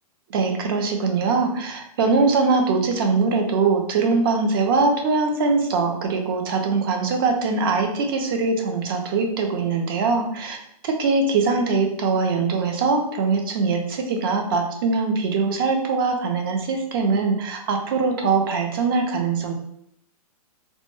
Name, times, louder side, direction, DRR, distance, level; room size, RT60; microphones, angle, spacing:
voice 1, 0.3-10.6 10.8-19.5, right 4 dB, 35° right, 4 dB, 0.4 m, -22 dB
2.1 x 2.1 x 3.0 m, 0.73 s
hypercardioid pair, 165°, 20 cm